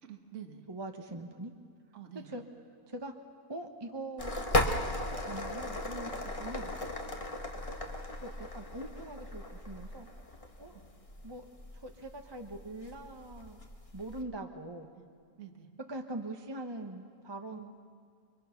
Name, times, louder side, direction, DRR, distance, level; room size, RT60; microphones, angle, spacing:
voice 1, 0.0-0.7 1.9-2.4 10.7-10.8 15.0-15.1 15.4-15.7 17.5-17.7, right 9 dB, 50° right, 4 dB, 1.7 m, -48 dB
voice 2, 0.7-1.5 2.3-2.4 2.9-3.1 3.5-6.7 7.7-7.8 8.2-10.1 10.6-10.7 11.2-11.4 11.7-13.6 13.9-14.9 15.9-17.7, right 2 dB, 20° right, 3 dB, 1.0 m, -43 dB
sound 1, 4.2-14.2, left 1 dB, 25° left, 1.3 m, -36 dB
30.0 x 23.5 x 5.9 m, 2.2 s
omnidirectional pair, 1.7 m